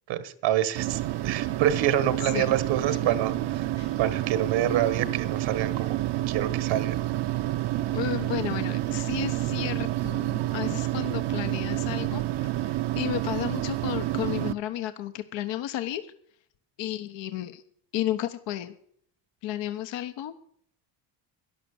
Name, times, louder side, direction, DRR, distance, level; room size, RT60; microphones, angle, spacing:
voice 1, 0.1-3.7 4.0-6.0 6.3-7.0, right 11 dB, 80° right, 13 dB, 1.6 m, -27 dB
sound 1, 0.8-14.5, right 15 dB, 65° right, 0.8 m, -29 dB
voice 2, 2.2-2.5 3.8-4.0 7.9-16.1 16.8-17.6 17.9-18.7 19.4-20.3, left 13 dB, 70° left, 9 dB, 1.1 m, -33 dB
12.0 x 11.5 x 7.1 m, 0.64 s
cardioid pair, 110°, 45 cm